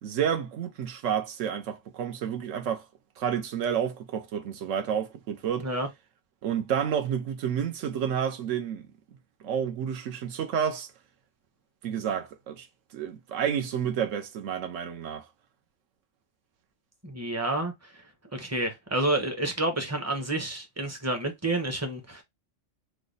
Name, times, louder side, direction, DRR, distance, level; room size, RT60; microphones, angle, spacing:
voice 1, 0.0-2.9 3.2-5.7 6.4-8.9 9.4-10.9 11.8-12.7 12.9-15.3, right 8 dB, 80° right, 1.0 m, -30 dB
voice 2, 17.0-18.0 18.3-22.2, right 2 dB, 15° right, 0.6 m, -29 dB
3.3 x 2.0 x 3.8 m
omnidirectional pair, 1.3 m